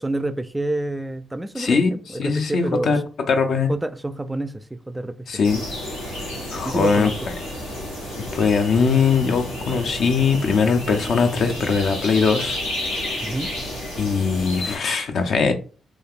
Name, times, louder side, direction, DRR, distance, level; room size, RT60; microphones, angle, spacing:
voice 1, 0.0-3.0 3.7-5.1 6.6-7.2 13.2-13.5, right 2 dB, 15° right, 0.3 m, -28 dB
voice 2, 1.6-1.9 2.2-3.0 3.3-3.7 5.3-5.6 6.5-7.1 8.3-12.6 13.0-13.3 14.0-15.5, left 5 dB, 60° left, 0.5 m, -20 dB
sound 1, 5.4-14.8, left 1 dB, 90° left, 0.9 m, -31 dB
3.1 x 2.4 x 2.4 m
hypercardioid pair, 40°, 0 cm